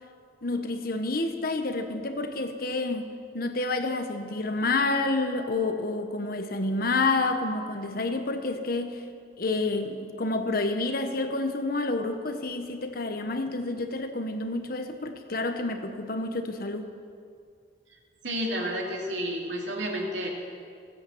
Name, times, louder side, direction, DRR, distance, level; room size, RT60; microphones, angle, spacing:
voice 1, 0.4-9.0 9.4-16.9, left 2 dB, 55° left, 7 dB, 1.2 m, -29 dB
voice 2, 18.2-20.3, equal, 90° right, -1 dB, 2.7 m, -30 dB
16.5 x 10.5 x 7.3 m, 2.3 s
head